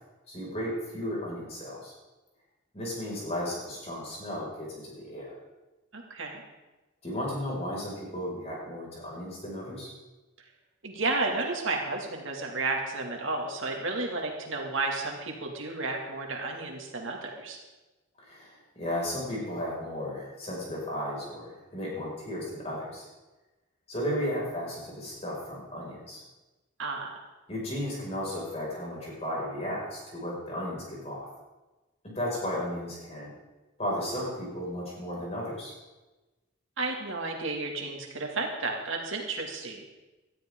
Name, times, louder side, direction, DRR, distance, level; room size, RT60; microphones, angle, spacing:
voice 1, 0.3-1.9 2.7-5.3 7.0-9.9 18.2-23.1 23.9-26.2 27.5-31.3 32.0-33.3 33.8-35.7, equal, 30° left, -5 dB, 5.9 m, -34 dB
voice 2, 5.9-6.4 10.8-17.6 26.8-27.1 36.8-39.9, right 3 dB, 65° right, 1 dB, 2.4 m, -32 dB
19.0 x 13.0 x 3.8 m, 1.1 s
head